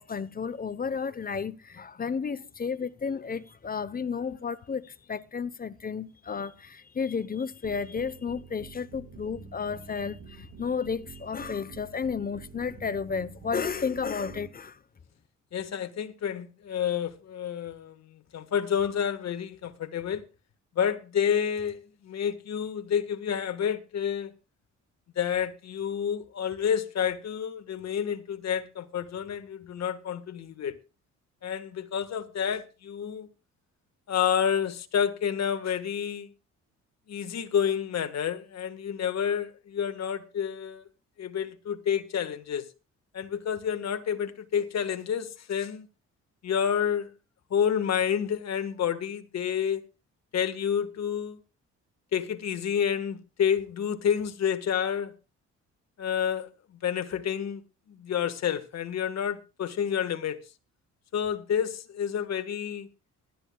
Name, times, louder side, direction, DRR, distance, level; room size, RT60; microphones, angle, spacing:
voice 1, 0.0-14.8, left 6 dB, 30° left, 0.9 m, -32 dB
sound 1, 7.6-14.5, right 5 dB, 55° right, 6.5 m, -47 dB
voice 2, 15.5-20.2 20.7-24.3 25.1-30.7 31.4-33.3 34.1-36.3 37.1-40.8 41.2-42.6 43.1-45.9 46.4-47.1 47.5-49.8 50.3-51.4 52.1-55.1 56.0-57.6 57.9-60.4 61.1-62.9, left 8 dB, 60° left, 1.6 m, -29 dB
20.0 x 12.5 x 2.3 m
cardioid pair, 90°, 30 cm